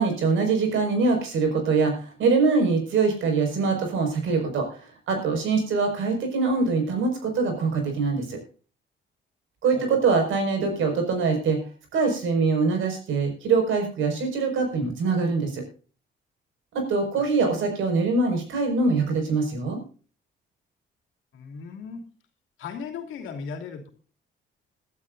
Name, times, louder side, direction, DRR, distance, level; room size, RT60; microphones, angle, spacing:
voice 1, 0.0-8.4 9.6-11.6 11.9-15.6 16.7-19.8, right 4 dB, 80° right, 4 dB, 5.7 m, -23 dB
voice 2, 9.7-10.2 17.2-17.3 21.3-22.0 22.6-23.9, left 6 dB, 85° left, 4 dB, 2.9 m, -37 dB
21.5 x 12.0 x 2.7 m, 0.38 s
cardioid pair, 90°, 20 cm